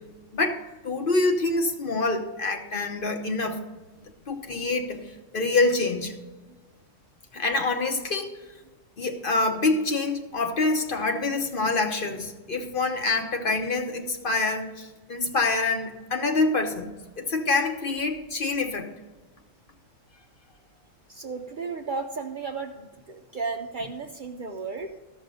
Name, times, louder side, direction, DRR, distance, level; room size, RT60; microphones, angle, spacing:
voice 1, 0.3-3.6 4.3-5.0 5.3-6.1 7.3-8.3 9.0-18.9, left 3 dB, 45° left, 5 dB, 1.0 m, -26 dB
voice 2, 21.1-25.0, right 4 dB, 50° right, 5 dB, 0.7 m, -34 dB
13.5 x 6.2 x 5.3 m, 1.2 s
omnidirectional pair, 1.3 m